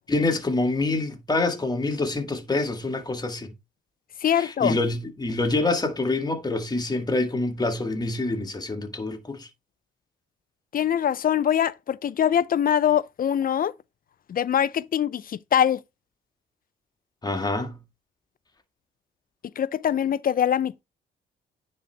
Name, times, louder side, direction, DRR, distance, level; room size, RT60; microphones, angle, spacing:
voice 1, 0.1-3.5 4.3-9.5 17.2-17.8, left 2 dB, 20° left, 2.0 m, -26 dB
voice 2, 4.2-4.8 10.7-13.7 14.3-15.8 19.6-20.8, left 9 dB, 45° left, 0.5 m, -23 dB
9.8 x 4.2 x 3.4 m
cardioid pair, 90°, 20 cm